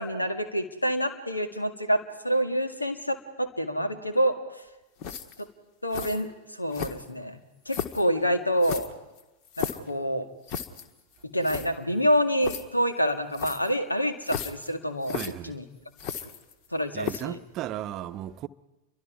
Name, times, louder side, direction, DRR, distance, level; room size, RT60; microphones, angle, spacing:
voice 1, 0.0-4.4 5.4-5.5 5.8-8.9 9.6-10.3 11.3-15.2 15.4-15.6 16.7-17.4, equal, 85° left, 2.0 m, -27 dB
sound 1, 5.0-5.4 5.9-6.2 6.7-7.2 7.7-8.1 8.6-9.9 10.5-10.9 11.2-11.3 11.4-11.7 12.4-12.6 13.3-13.7 14.2-14.7 15.0-15.3 16.0-16.7 17.0-17.4, left 8 dB, 45° left, 1.7 m, -34 dB
voice 2, 15.1-15.6 16.9-18.5, right 12 dB, 35° right, 0.9 m, -35 dB
29.5 x 24.0 x 4.8 m
figure-of-eight pair, 90°, 0 cm